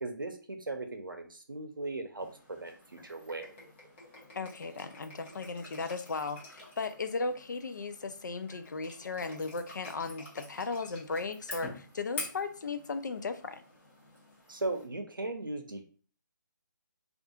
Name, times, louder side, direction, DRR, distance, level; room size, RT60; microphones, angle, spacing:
voice 1, 0.0-3.5 14.5-15.9, right 2 dB, 85° right, 5 dB, 0.6 m, -38 dB
sound 1, 2.2-14.8, left 2 dB, 35° left, 1.1 m, -48 dB
voice 2, 4.3-13.6, left 4 dB, 60° left, 9 dB, 0.4 m, -36 dB
2.6 x 2.4 x 2.3 m, 0.40 s
figure-of-eight pair, 150°, 11 cm